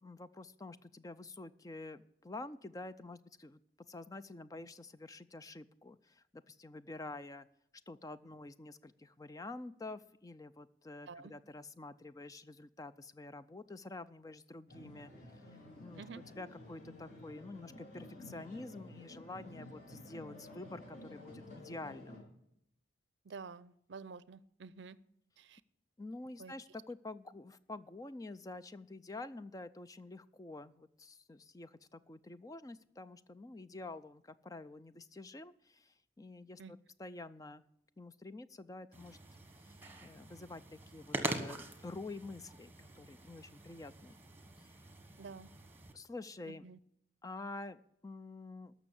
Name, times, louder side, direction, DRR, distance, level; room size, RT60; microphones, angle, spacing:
voice 1, 0.0-3.6 3.9-7.5 7.9-15.4 15.8-22.2 26.0-37.6 38.0-39.2 39.6-44.1 44.6-44.7 45.9-46.7 47.2-48.7, left 2 dB, 20° left, 13 dB, 0.4 m, -48 dB
sound 1, 14.7-22.2, left 1 dB, 45° left, 4.9 m, -52 dB
voice 2, 23.3-25.0 25.4-25.6 26.4-26.5 36.6-36.7 45.2-45.5 46.5-46.8, right 4 dB, 70° right, 18 dB, 0.5 m, -49 dB
sound 2, 38.9-45.9, right 2 dB, 10° right, 1.3 m, -44 dB
13.5 x 6.1 x 8.4 m, 0.74 s
head